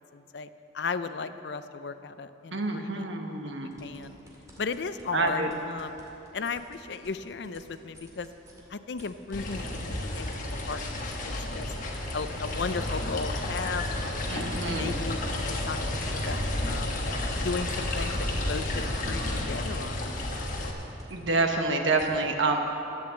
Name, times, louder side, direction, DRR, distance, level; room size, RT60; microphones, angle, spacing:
voice 1, 0.1-0.5 0.7-3.1 3.6-4.2 4.6-6.0 6.3-8.3 8.7-11.7 12.1-14.3 14.7-16.9 17.4-20.7, left 4 dB, 65° left, 12 dB, 0.5 m, -36 dB
voice 2, 2.5-3.7 5.1-5.5 14.3-15.0 21.1-22.6, right 3 dB, 80° right, 3 dB, 1.3 m, -27 dB
sound 1, 3.7-8.6 9.0-14.4 14.8-22.0, right 1 dB, 20° right, 2.2 m, -52 dB
sound 2, 9.3-20.7, left 1 dB, 45° left, 1.3 m, -31 dB
12.0 x 8.9 x 7.5 m, 3.0 s
head